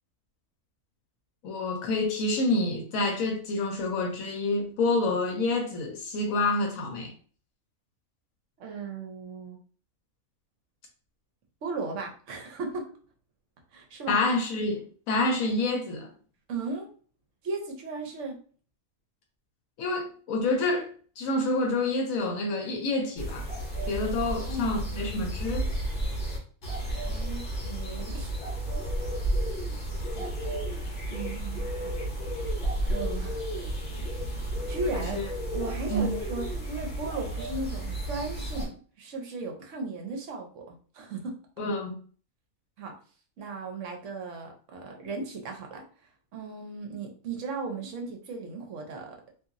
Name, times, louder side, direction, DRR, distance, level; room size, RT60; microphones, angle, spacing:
voice 1, 1.4-7.1 14.1-16.1 19.8-20.9 21.2-23.5 23.9-25.7 35.1-35.3 35.9-36.2 41.6-41.9, left 2 dB, 75° left, 1.0 m, -28 dB
voice 2, 8.6-9.6 11.6-12.9 13.7-14.2 16.5-16.9 17.4-18.4 24.3-24.9 27.1-28.3 30.1-30.3 31.1-32.0 32.9-33.8 34.7-35.2 35.5-41.3 42.8-42.9 43.4-45.8 46.3-49.2, right 3 dB, 65° right, 0.9 m, -36 dB
sound 1, 23.2-38.7, right 1 dB, 45° left, 0.9 m, -32 dB
2.8 x 2.6 x 2.5 m
omnidirectional pair, 1.5 m